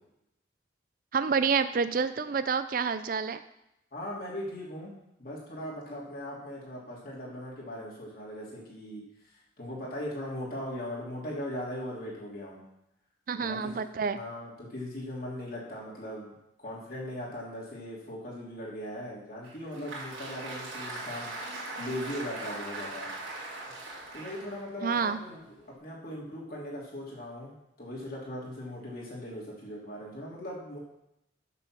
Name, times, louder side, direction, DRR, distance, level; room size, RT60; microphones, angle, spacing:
voice 1, 1.1-3.4 13.3-14.2 24.8-25.2, right 5 dB, 45° right, 12 dB, 0.4 m, -28 dB
voice 2, 3.9-4.9 5.2-9.0 9.6-12.6 13.3-13.8 14.1-16.3 16.6-21.3 21.8-23.1 24.1-25.4 25.8-30.8, left 1 dB, 50° left, -5 dB, 2.9 m, -39 dB
Applause, 19.4-25.7, right 2 dB, 90° right, 2.7 m, -41 dB
6.9 x 6.8 x 6.0 m, 0.85 s
head